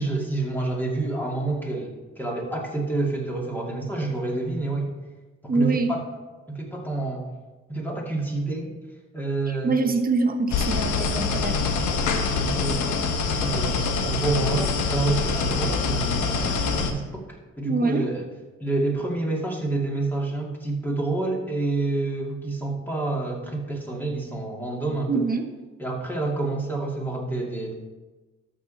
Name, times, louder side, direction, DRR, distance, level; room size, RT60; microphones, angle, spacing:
voice 1, 0.0-5.0 5.4-6.0 6.5-7.2 7.7-8.7 9.1-9.8 12.3-12.8 13.3-17.2 17.6-18.3 18.6-25.3 25.8-27.7, right 2 dB, 5° left, -2 dB, 2.4 m, -28 dB
voice 2, 5.5-6.0 9.5-11.6 17.6-18.0 25.1-25.4, right 3 dB, 30° right, 5 dB, 1.2 m, -24 dB
sound 1, 10.5-16.9, left 4 dB, 80° left, 1.1 m, -25 dB
13.0 x 6.2 x 4.1 m, 1.2 s
cardioid pair, 90°, 30 cm